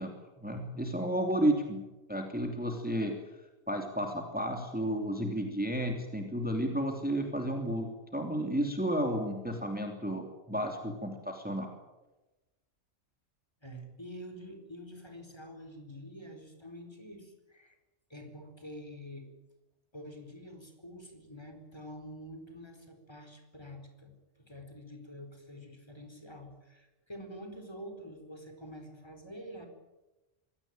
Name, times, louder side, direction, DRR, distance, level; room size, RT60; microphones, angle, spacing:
voice 1, 0.0-1.8 2.1-3.2 3.7-11.7, right 1 dB, 5° right, 3 dB, 2.8 m, -32 dB
voice 2, 13.6-17.8 18.1-19.3 19.9-29.7, equal, 20° left, 5 dB, 4.4 m, -47 dB
25.0 x 17.5 x 9.0 m, 1.1 s
omnidirectional pair, 1.3 m